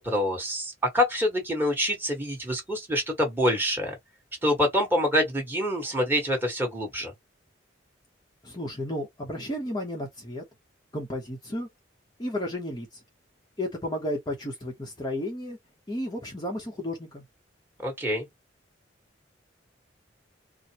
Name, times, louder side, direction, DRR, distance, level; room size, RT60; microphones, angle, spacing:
voice 1, 0.0-3.9 4.4-7.1 17.8-18.2, equal, 10° right, 1.6 m, -26 dB
voice 2, 8.4-10.4 10.9-11.7 12.2-13.0 13.6-15.6 15.9-17.2, left 1 dB, 20° left, 0.9 m, -33 dB
4.4 x 2.2 x 3.0 m
head